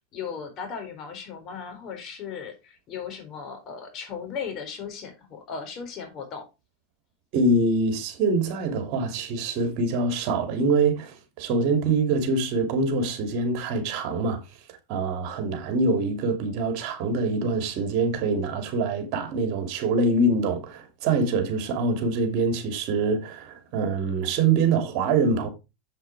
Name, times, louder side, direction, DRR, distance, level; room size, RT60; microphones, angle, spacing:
voice 1, 0.1-6.5, left 6 dB, 40° left, 4.0 m, -36 dB
voice 2, 7.3-14.4 14.9-25.5, right 3 dB, 55° right, 3.0 m, -24 dB
7.8 x 7.8 x 4.4 m
supercardioid pair, 130°, 0 cm